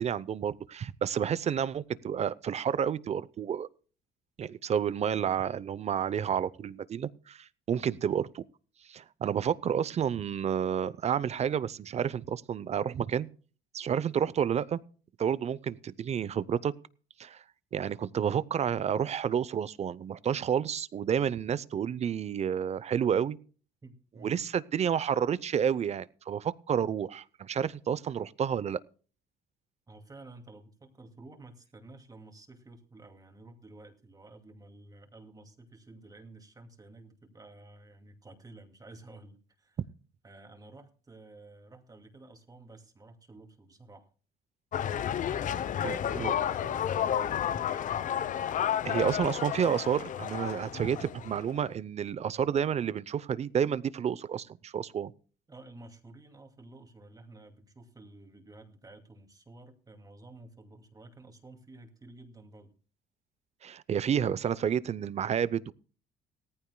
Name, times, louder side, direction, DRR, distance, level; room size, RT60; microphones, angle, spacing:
voice 1, 0.0-3.7 4.4-8.4 8.9-13.3 13.7-14.8 15.2-16.7 17.2-17.4 17.7-23.4 24.2-28.8 45.8-46.3 48.8-55.1 63.6-65.7, right 8 dB, 40° right, 0.7 m, -30 dB
voice 2, 23.8-24.4 29.9-39.8 40.2-44.1 45.2-48.1 55.5-62.7, right 2 dB, 20° right, 2.4 m, -52 dB
sound 1, 44.7-51.6, left 9 dB, 50° left, 0.7 m, -31 dB
18.0 x 14.5 x 2.3 m
cardioid pair, 110°, 17 cm